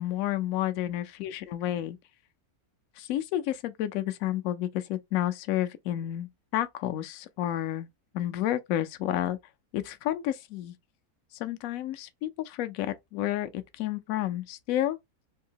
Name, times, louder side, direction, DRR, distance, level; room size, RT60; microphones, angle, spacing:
voice 1, 0.0-2.0 3.0-7.9 8.1-9.4 9.7-10.7 11.3-15.0, left 13 dB, 70° left, 0.9 m, -30 dB
3.6 x 2.7 x 2.7 m
omnidirectional pair, 1.6 m